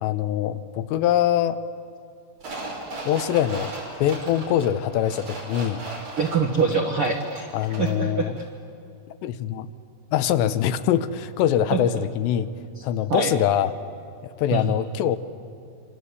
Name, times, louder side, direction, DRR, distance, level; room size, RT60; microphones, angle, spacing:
voice 1, 0.0-1.6 3.1-3.7 4.0-5.8 7.5-8.4 9.2-9.7 10.1-12.5 12.8-13.7 14.4-15.2, left 10 dB, 85° left, 12 dB, 3.1 m, -23 dB
sound 1, 2.4-8.1 8.4-8.5, right 2 dB, 45° right, 7.2 m, -37 dB
voice 2, 6.2-7.5 7.8-8.3 11.7-11.8 13.1-13.3 14.5-14.7, right 4 dB, 70° right, 3 dB, 1.2 m, -24 dB
27.5 x 25.5 x 8.3 m, 2.5 s
omnidirectional pair, 5.0 m